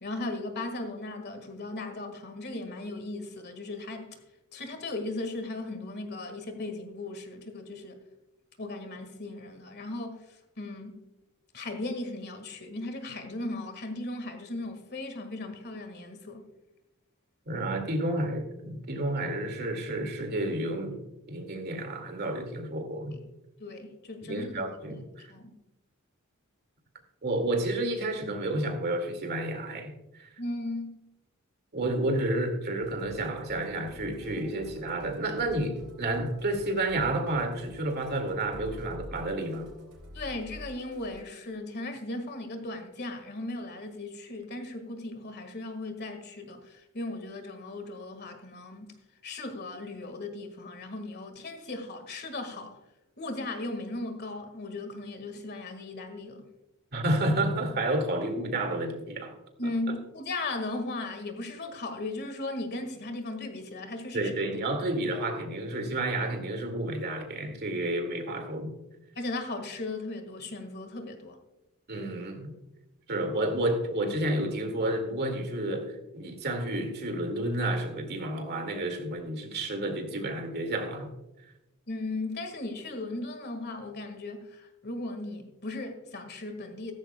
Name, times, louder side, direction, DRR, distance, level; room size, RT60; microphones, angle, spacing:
voice 1, 0.0-4.2 4.5-8.0 8.6-11.0 11.5-16.4 23.6-24.5 24.9-25.6 30.4-31.0 40.1-48.9 49.2-52.8 53.2-56.4 59.6-64.3 69.2-71.4 81.9-86.9, left 2 dB, 50° left, 1.7 m, -37 dB
voice 2, 17.5-21.0 21.3-23.1 24.2-25.3 27.2-29.9 30.2-30.3 31.7-39.7 56.9-59.4 59.6-59.9 64.1-68.7 71.9-72.5 73.1-81.1, right 1 dB, 50° right, 2.1 m, -30 dB
Musical instrument, 32.8-41.3, equal, 75° right, 3.6 m, -48 dB
15.5 x 14.0 x 2.2 m
head